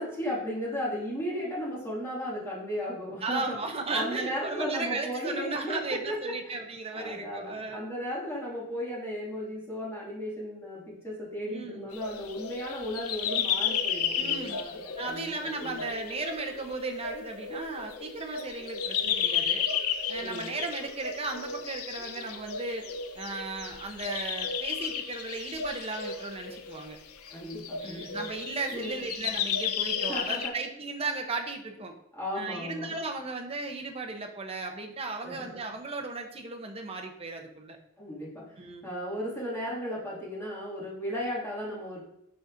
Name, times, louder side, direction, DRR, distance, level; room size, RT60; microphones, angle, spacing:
voice 1, 0.0-3.5 3.9-6.6 6.9-14.7 15.0-15.2 15.6-15.7 20.1-20.5 27.3-28.2 28.7-29.1 30.1-30.5 32.1-32.9 35.2-35.6 38.0-42.0, equal, 10° left, -7 dB, 2.2 m, -35 dB
voice 2, 3.2-7.9 11.5-11.9 14.1-14.6 15.0-19.7 20.1-22.9 23.2-27.0 27.8-31.9 32.3-37.8 38.6-38.9, right 3 dB, 25° right, 3 dB, 0.8 m, -36 dB
sound 1, 11.9-30.5, left 7 dB, 75° left, 0.7 m, -33 dB
12.0 x 4.1 x 2.6 m, 0.79 s
head